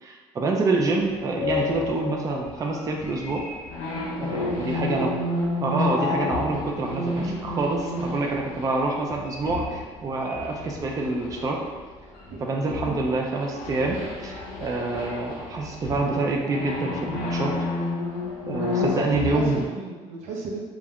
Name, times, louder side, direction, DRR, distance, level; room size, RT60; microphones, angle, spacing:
voice 1, 0.0-3.4 4.2-5.1 5.6-11.6 12.4-17.5 18.5-19.7, right 3 dB, 30° right, 0 dB, 0.4 m, -26 dB
sound 1, 1.3-12.3 12.7-19.7, left 3 dB, 80° left, 0.6 m, -31 dB
voice 2, 4.2-4.7 12.3-12.4 12.9-13.0 18.6-20.6, right 3 dB, 80° right, -1 dB, 0.6 m, -34 dB
2.4 x 2.1 x 3.5 m, 1.4 s
cardioid pair, 105°, 12 cm